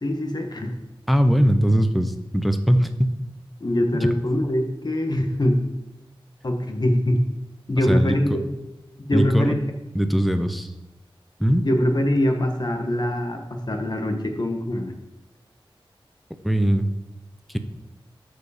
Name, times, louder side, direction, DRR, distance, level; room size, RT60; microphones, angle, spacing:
voice 1, 0.0-0.8 3.6-5.6 6.4-7.2 7.7-8.5 9.1-9.5 11.6-15.0, left 1 dB, 45° left, 3 dB, 1.4 m, -23 dB
voice 2, 1.1-3.1 7.9-8.2 9.1-9.5 9.9-10.7 11.4-11.7 16.4-16.9, equal, ahead, 8 dB, 0.8 m, -20 dB
13.0 x 4.9 x 5.0 m, 0.97 s
wide cardioid pair, 75°, 9 cm